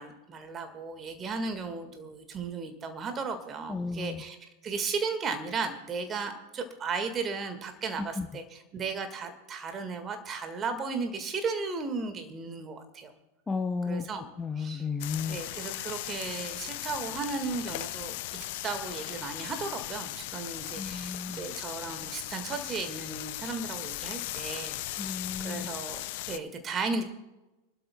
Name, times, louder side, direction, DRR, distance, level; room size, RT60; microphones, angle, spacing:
voice 1, 0.0-4.4 4.6-13.1 13.8-14.3 14.6-14.9 15.3-18.1 18.6-27.0, right 4 dB, 25° right, 7 dB, 1.7 m, -35 dB
voice 2, 3.7-4.2 8.2-8.3 13.5-15.4 20.8-21.4 25.0-25.7, left 4 dB, 15° left, 7 dB, 0.7 m, -33 dB
sound 1, 15.0-26.4, left 16 dB, 50° left, 0.5 m, -38 dB
29.5 x 12.5 x 2.3 m, 1.1 s
figure-of-eight pair, 90°, 0 cm